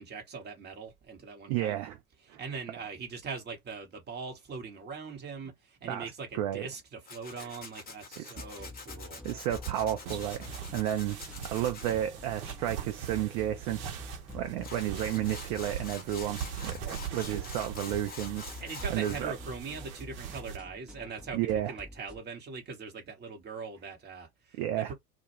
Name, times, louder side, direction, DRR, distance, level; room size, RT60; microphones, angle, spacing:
voice 1, 0.0-1.8 2.3-9.2 16.8-17.4 18.6-21.4 21.7-24.9, right 5 dB, 20° right, 1.0 m, -41 dB
voice 2, 1.5-2.0 2.3-2.4 5.8-6.7 7.4-7.5 8.2-8.3 9.2-11.2 11.4-16.8 17.1-18.5 18.9-19.3 21.3-21.7 24.6-24.9, right 12 dB, 40° right, 0.5 m, -32 dB
Tools, 7.1-12.0 14.3-14.4 14.6-19.2, left 4 dB, 20° left, 1.0 m, -46 dB
sound 1, 8.3-22.2, left 2 dB, ahead, 0.7 m, -48 dB
sound 2, 10.1-20.6, right 9 dB, 60° right, 0.8 m, -41 dB
2.2 x 2.2 x 3.0 m
figure-of-eight pair, 75°, 47 cm